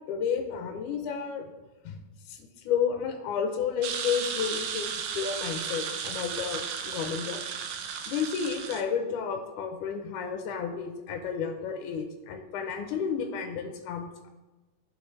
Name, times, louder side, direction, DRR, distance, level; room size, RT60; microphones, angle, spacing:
voice 1, 0.0-1.5 1.8-7.4 8.1-14.3, left 7 dB, 75° left, 5 dB, 2.2 m, -32 dB
sound 1, 3.8-8.8, right 7 dB, 85° right, 2.4 m, -34 dB
15.5 x 5.7 x 3.2 m, 1.1 s
omnidirectional pair, 3.7 m